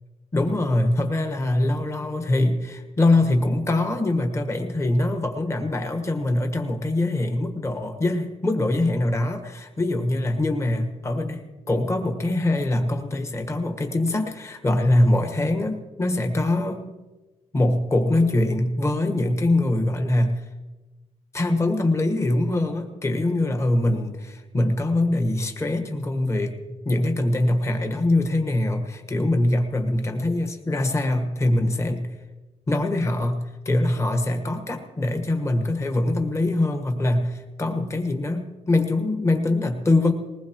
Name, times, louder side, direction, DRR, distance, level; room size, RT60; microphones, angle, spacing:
voice 1, 0.3-16.8 17.5-20.4 21.3-26.6 26.8-32.1 32.7-40.1, left 2 dB, 20° left, 5 dB, 1.3 m, -23 dB
20.5 x 19.5 x 3.0 m, 1.2 s
cardioid pair, 145°, 13 cm